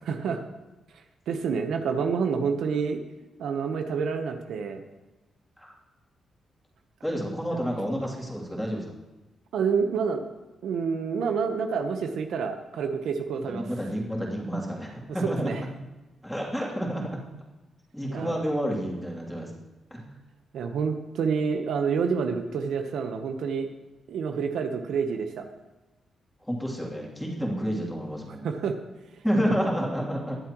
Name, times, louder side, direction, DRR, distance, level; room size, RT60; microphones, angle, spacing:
voice 1, 0.1-0.4 1.3-3.0 3.4-4.8 9.5-10.2 10.6-13.6 15.4-15.6 18.1-18.4 20.5-23.7 24.1-25.4 28.4-28.8, right 6 dB, 80° right, 6 dB, 1.0 m, -28 dB
voice 2, 7.0-8.8 13.5-15.6 16.2-17.1 17.9-19.5 19.9-20.1 26.4-28.5 29.2-30.4, equal, 5° left, -3 dB, 2.9 m, -29 dB
21.5 x 7.7 x 3.1 m, 1.1 s
cardioid pair, 95°, 0 cm